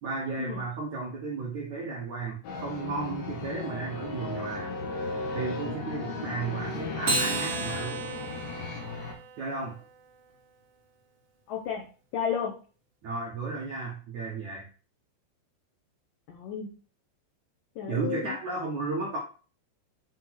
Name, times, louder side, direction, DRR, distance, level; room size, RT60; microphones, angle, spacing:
voice 1, 0.0-4.8 5.3-8.1 9.4-9.8 13.0-14.7 17.9-19.2, right 4 dB, 75° right, -3 dB, 1.7 m, -34 dB
sound 1, 2.4-9.1, left 3 dB, 70° left, 4.0 m, -35 dB
Acoustic guitar, 7.0-9.7, right 3 dB, 40° right, 1.9 m, -32 dB
voice 2, 11.5-11.8 12.1-12.5 16.3-16.7 17.8-18.4, left 7 dB, 90° left, 1 dB, 1.9 m, -32 dB
8.4 x 4.0 x 4.6 m, 0.37 s
omnidirectional pair, 5.5 m